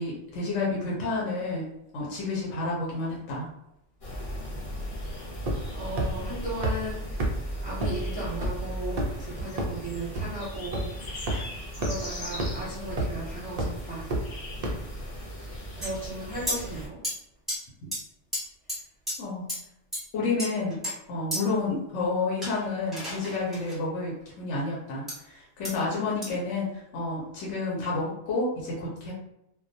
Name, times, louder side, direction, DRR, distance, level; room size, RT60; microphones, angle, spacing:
voice 1, 0.0-1.7 1.9-3.5 11.3-11.4 19.2-19.5 20.1-29.1, left 3 dB, 75° left, -4 dB, 1.0 m, -30 dB
sound 1, 4.0-16.9, equal, 50° left, 0.9 m, -37 dB
sound 2, 5.5-5.7 6.0-6.1 6.6-6.7 7.2-7.3 7.8-7.9 8.4-8.5 9.0-9.2 9.6-9.7 10.2-10.3 10.7-10.8 11.3-11.4 11.8-11.9 12.4-12.5 13.0-13.2 13.6-13.7 14.1-14.2 14.6-14.7, right 2 dB, 80° right, 0.3 m, -27 dB
voice 2, 5.8-10.9 11.8-14.0 15.8-17.0, right 1 dB, 35° right, -9 dB, 0.6 m, -36 dB
sound 3, 15.8-15.9 16.5-16.6 17.0-17.1 17.5-17.6 17.9-18.0 18.3-18.4 18.7-18.8 19.1-19.2 19.5-19.6 19.9-20.0 20.4-20.9 21.3-21.4 22.4-23.8 25.1-25.2 25.6-25.7 26.2-26.3, equal, ahead, 0.7 m, -32 dB
2.2 x 2.2 x 2.6 m, 0.82 s
omnidirectional pair, 1.3 m